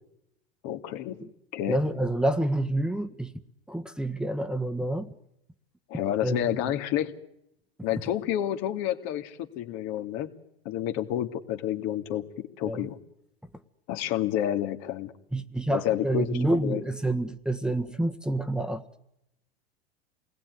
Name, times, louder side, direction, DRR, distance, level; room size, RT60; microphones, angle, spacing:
voice 1, 0.6-1.2 1.5-1.8 5.9-7.1 7.8-10.3 10.6-12.2 12.6-13.0 13.9-15.1 15.7-16.8, left 11 dB, 55° left, 2.6 m, -29 dB
voice 2, 1.7-3.3 3.7-5.1 6.2-6.7 12.6-12.9 15.3-18.8, right 1 dB, 5° right, 1.5 m, -28 dB
28.0 x 20.0 x 9.6 m
hypercardioid pair, 95°, 32 cm